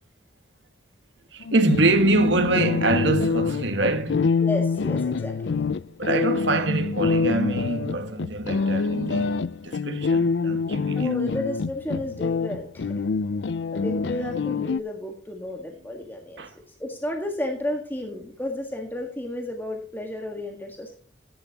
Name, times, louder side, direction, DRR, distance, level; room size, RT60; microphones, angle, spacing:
voice 1, 1.3-4.3 5.9-11.2 16.4-16.5, right 2 dB, 80° right, 1.7 m, -24 dB
sound 1, 1.4-14.8, left 4 dB, 75° left, 0.5 m, -26 dB
voice 2, 4.4-5.6 10.9-12.9 13.7-20.9, left 1 dB, 10° left, 1.6 m, -32 dB
15.0 x 10.5 x 2.9 m
head